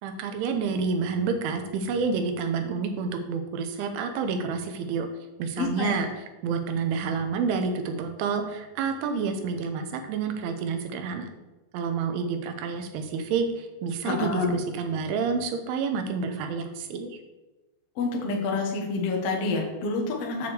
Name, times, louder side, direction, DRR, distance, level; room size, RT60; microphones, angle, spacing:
voice 1, 0.0-5.1 5.4-6.1 6.4-11.3 11.7-17.2, right 5 dB, 80° right, 6 dB, 3.2 m, -29 dB
voice 2, 5.6-6.0 14.0-14.5 17.9-20.5, left 3 dB, 70° left, 0 dB, 1.4 m, -28 dB
8.2 x 4.8 x 7.0 m, 1.1 s
omnidirectional pair, 5.5 m